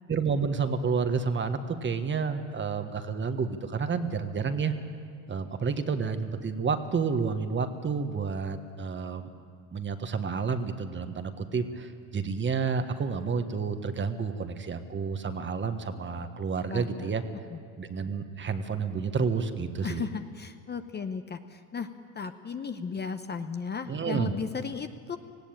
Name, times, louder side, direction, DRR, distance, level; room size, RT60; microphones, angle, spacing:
voice 1, 0.1-4.7 5.3-9.3 9.7-17.2 17.8-20.1 23.9-24.3, right 5 dB, 30° right, 8 dB, 1.4 m, -30 dB
voice 2, 16.7-17.1 17.5-17.6 19.8-21.9 22.1-25.2, left 6 dB, 25° left, 8 dB, 0.8 m, -35 dB
18.5 x 16.0 x 8.9 m, 2.3 s
supercardioid pair, 100°, 40 cm